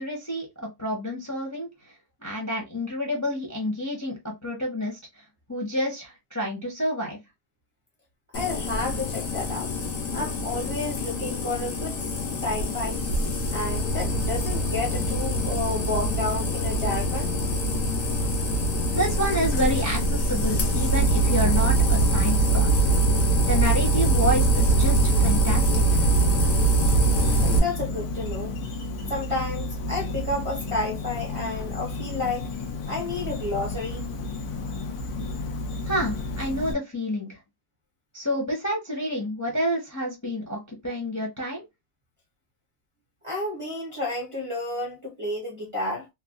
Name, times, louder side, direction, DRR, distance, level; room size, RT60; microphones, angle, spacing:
voice 1, 0.0-1.7 2.2-4.1 4.4-5.0 5.5-7.2 18.9-22.7 23.5-26.0 35.9-37.4 38.1-41.6, equal, 15° left, 0.6 m, -29 dB
sound 1, 8.3-27.6, right 2 dB, 65° left, 1.1 m, -23 dB
voice 2, 8.3-9.7 10.1-12.1 12.4-13.0 13.5-17.3 27.4-28.5 29.1-32.5 32.9-34.1 43.2-46.1, left 2 dB, 30° right, 0.6 m, -31 dB
Insect, 26.9-36.7, left 3 dB, 85° left, 1.2 m, -32 dB
3.1 x 2.2 x 2.4 m
omnidirectional pair, 1.6 m